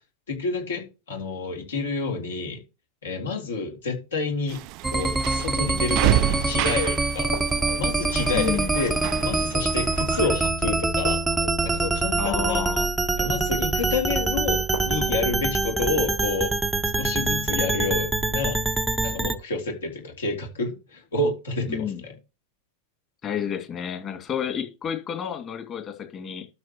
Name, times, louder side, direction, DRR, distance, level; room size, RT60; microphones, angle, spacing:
voice 1, 0.3-2.6 3.0-4.6 4.9-7.3 7.8-8.9 9.2-11.2 11.6-12.7 13.2-16.5 17.0-18.6 19.0-22.2, left 3 dB, 65° left, 3.4 m, -29 dB
sound 1, 4.5-10.5, right 16 dB, 40° right, 0.4 m, -29 dB
sound 2, 4.8-19.3, right 3 dB, 5° right, 0.8 m, -25 dB
sound 3, 7.3-9.4 11.0-13.3 14.7-15.2, equal, 90° left, 3.0 m, -39 dB
voice 2, 8.3-8.7 12.2-12.9 21.7-22.0 23.2-26.5, left 8 dB, 30° left, 2.4 m, -30 dB
12.5 x 7.0 x 3.0 m
figure-of-eight pair, 90°, 0 cm